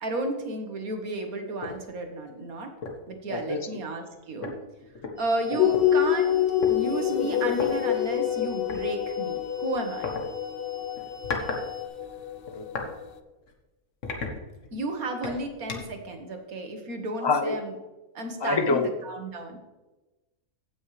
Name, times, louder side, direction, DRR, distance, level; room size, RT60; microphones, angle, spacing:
voice 1, 0.0-2.7 3.1-4.5 5.2-6.4 6.7-10.1 14.7-17.8 18.2-19.6, right 2 dB, 70° right, 4 dB, 1.8 m, -33 dB
sound 1, 1.6-1.8 2.3-2.4 2.8-3.1 4.1-4.2 4.4-5.8 6.6-6.8 7.5-7.7 8.7-8.9 10.0-10.2 11.0-11.6 12.0-12.9 13.4-13.5 14.0-14.8 15.2-16.0, left 3 dB, 55° left, 1.6 m, -35 dB
sound 2, 5.2-11.9, left 6 dB, 45° right, 2.2 m, -43 dB
sound 3, 5.6-13.0, left 11 dB, 80° left, 0.5 m, -27 dB
voice 2, 17.2-17.5 18.4-18.9, left 3 dB, 30° left, 5 dB, 0.5 m, -25 dB
16.0 x 6.3 x 3.3 m, 1.1 s
omnidirectional pair, 1.6 m